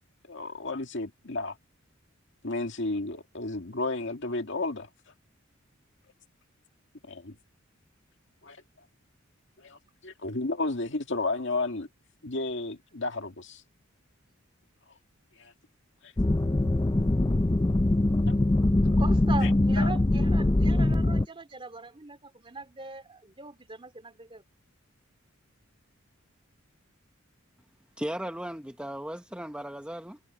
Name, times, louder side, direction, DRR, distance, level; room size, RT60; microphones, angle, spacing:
voice 1, 0.3-1.6 2.4-4.9 7.0-7.4 8.4-8.6 9.6-9.8 10.0-11.9 12.2-13.6 15.4-15.5 16.0-16.1 18.3-18.4 18.9-19.0 19.4-19.5 19.8-19.9, left 2 dB, 65° left, 2.1 m, -32 dB
sound 1, 16.2-21.3, left 1 dB, 20° left, 0.5 m, -23 dB
voice 2, 19.0-24.4, right 3 dB, 25° right, 2.7 m, -40 dB
voice 3, 28.0-30.2, right 1 dB, 5° right, 0.9 m, -36 dB
head